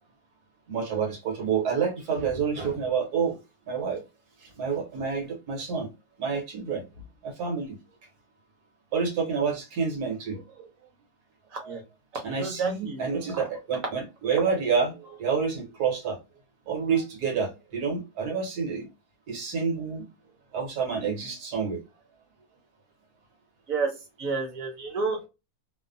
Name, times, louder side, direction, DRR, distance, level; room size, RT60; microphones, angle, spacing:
voice 1, 0.7-3.4 3.7-4.0 4.4-5.9 6.2-6.8 7.2-7.8 8.9-10.7 11.6-11.7 12.2-16.2 16.7-18.9 19.3-20.0 20.5-21.8, right 6 dB, 80° right, 1.5 m, -28 dB
voice 2, 11.5-11.8 12.3-13.1 23.7-23.9 24.2-25.3, right 4 dB, 65° right, 1.1 m, -30 dB
3.0 x 2.1 x 2.5 m
omnidirectional pair, 1.7 m